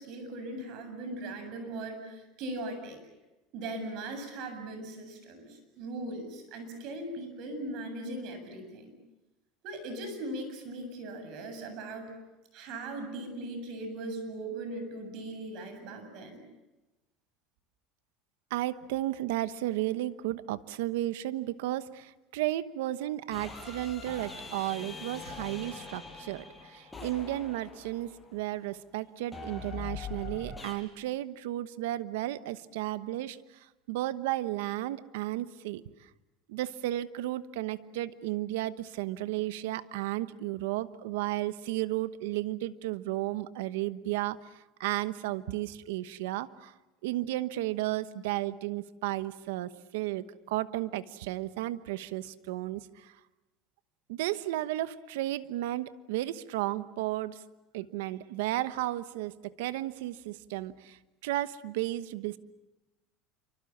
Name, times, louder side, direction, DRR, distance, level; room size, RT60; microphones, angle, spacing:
voice 1, 0.0-3.0 3.5-8.9 9.6-12.2 12.5-16.4, right 2 dB, 60° right, 7 dB, 7.8 m, -39 dB
voice 2, 18.5-26.4 26.7-33.4 33.9-35.8 36.5-44.4 44.8-46.7 47.0-52.8 54.1-57.4 57.7-61.0 61.2-62.4, right 15 dB, 85° right, 14 dB, 1.1 m, -33 dB
sound 1, 23.3-28.4 29.3-30.7, left 4 dB, 10° left, 5.9 m, -43 dB
27.5 x 24.5 x 7.4 m, 1.1 s
supercardioid pair, 115°, 0 cm